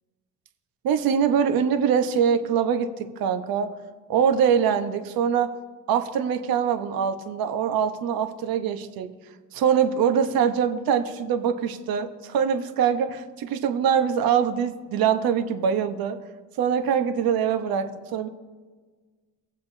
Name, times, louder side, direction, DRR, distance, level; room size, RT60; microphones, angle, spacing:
voice 1, 0.8-3.7 4.1-5.5 5.9-9.1 9.5-16.2 16.6-18.3, right 7 dB, 65° right, 9 dB, 1.0 m, -23 dB
19.5 x 7.6 x 2.7 m, 1.4 s
supercardioid pair, 80°, 38 cm